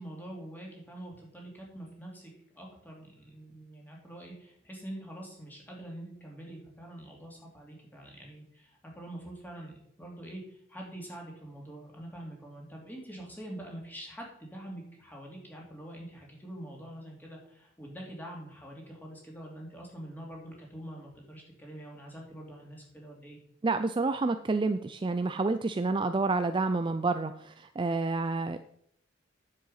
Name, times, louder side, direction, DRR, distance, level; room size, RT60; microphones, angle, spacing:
voice 1, 0.0-23.4, right 1 dB, 10° left, -2 dB, 3.0 m, -45 dB
voice 2, 23.6-28.6, right 3 dB, 25° right, 10 dB, 0.4 m, -29 dB
10.0 x 7.6 x 5.6 m, 0.69 s
head